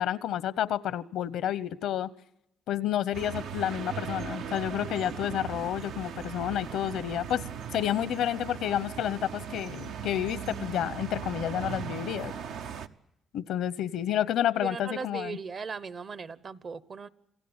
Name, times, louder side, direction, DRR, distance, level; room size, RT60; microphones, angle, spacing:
voice 1, 0.0-2.1 2.7-7.4 7.7-12.3 13.3-15.4, left 11 dB, 80° left, 0.8 m, -30 dB
sound 1, 3.1-12.9, right 7 dB, 85° right, 0.9 m, -38 dB
voice 2, 14.6-17.1, right 5 dB, 45° right, 0.9 m, -38 dB
28.0 x 16.0 x 8.8 m
cardioid pair, 90°, 0 cm